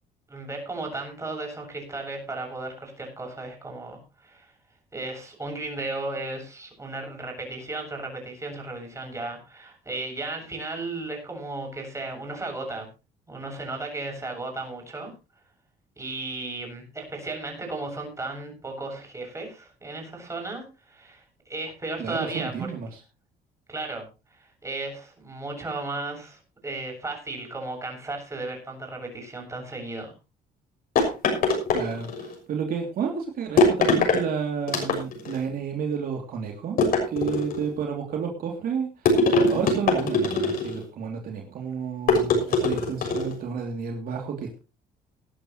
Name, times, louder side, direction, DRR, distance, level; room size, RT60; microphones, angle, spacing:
voice 1, 0.3-4.5 4.9-12.9 13.3-15.1 16.0-22.7 23.7-30.1, right 2 dB, 15° right, 2 dB, 7.5 m, -35 dB
voice 2, 22.0-23.0 31.7-36.8 37.1-39.1 39.5-44.6, right 6 dB, 60° right, 1 dB, 2.9 m, -31 dB
sound 1, 31.0-32.3 33.6-34.2 34.7-35.4 36.8-37.7 39.1-40.8 42.1-43.4, left 3 dB, 60° left, 6.5 m, -22 dB
19.0 x 11.5 x 3.1 m, 0.31 s
cardioid pair, 110°, 17 cm